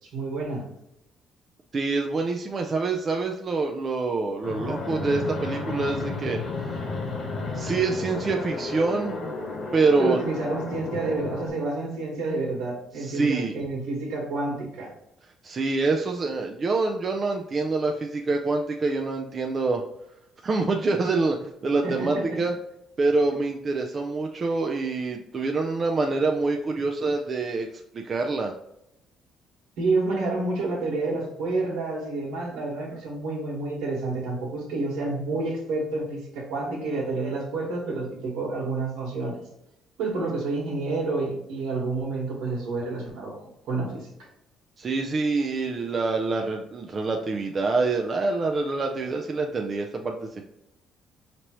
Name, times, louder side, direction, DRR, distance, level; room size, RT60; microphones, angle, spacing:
voice 1, 0.0-0.6 10.0-14.9 21.8-22.4 29.8-39.4 40.0-43.4 43.7-44.3, right 3 dB, 85° right, -3 dB, 1.5 m, -29 dB
voice 2, 1.7-6.8 7.5-9.3 9.7-10.2 13.0-13.5 15.4-19.8 20.4-22.5 23.0-27.7 27.9-28.5 44.8-50.4, right 3 dB, 35° right, 2 dB, 0.5 m, -26 dB
Fixed-wing aircraft airplane, 4.4-11.5, left 3 dB, 55° left, 1.1 m, -32 dB
5.1 x 3.0 x 3.0 m, 0.83 s
cardioid pair, 100°, 0 cm